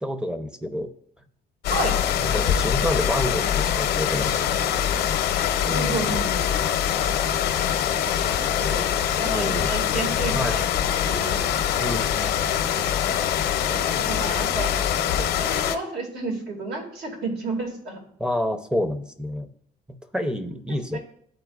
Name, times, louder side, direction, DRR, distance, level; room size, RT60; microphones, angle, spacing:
voice 1, 0.0-0.9 2.2-4.8 5.6-6.0 9.3-9.7 10.3-10.6 11.8-12.4 18.2-19.5 19.9-21.0, left 1 dB, 5° right, 9 dB, 0.6 m, -29 dB
sound 1, 1.6-15.8, left 9 dB, 80° left, 0.7 m, -24 dB
voice 2, 5.7-6.5 7.2-7.6 8.1-8.9 9.2-10.6 11.0-11.4 12.4-12.7 13.4-14.7 15.1-18.0 20.9-21.0, right 2 dB, 75° right, 1 dB, 2.1 m, -32 dB
12.0 x 4.3 x 2.3 m, 0.65 s
cardioid pair, 110°, 17 cm